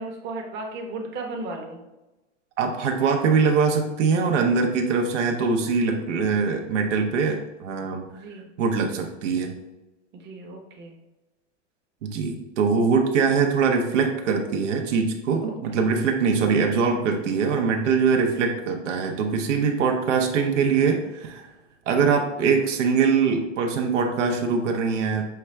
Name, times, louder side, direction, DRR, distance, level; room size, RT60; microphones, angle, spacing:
voice 1, 0.0-1.8 8.1-8.5 10.1-11.0 15.7-15.9, right 2 dB, 30° right, 1 dB, 0.8 m, -35 dB
voice 2, 2.6-8.1 8.6-9.5 12.0-21.5 21.9-25.2, right 5 dB, 80° right, 3 dB, 0.7 m, -22 dB
5.6 x 2.3 x 3.2 m, 1.0 s
hypercardioid pair, 110°, 36 cm